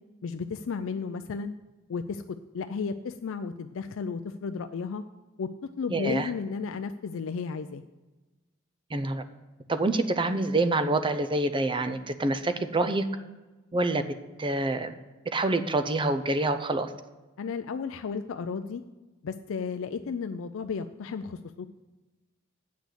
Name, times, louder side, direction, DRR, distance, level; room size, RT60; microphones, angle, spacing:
voice 1, 0.2-1.5 1.9-2.2 2.5-5.0 5.4-7.8 17.4-18.8 19.2-21.7, left 5 dB, 70° left, 8 dB, 0.4 m, -33 dB
voice 2, 5.9-6.3 8.9-9.2 9.7-13.1 13.7-14.0 14.4-14.9 15.3-16.9, right 2 dB, 25° right, 10 dB, 0.6 m, -26 dB
8.3 x 6.2 x 8.0 m, 1.2 s
head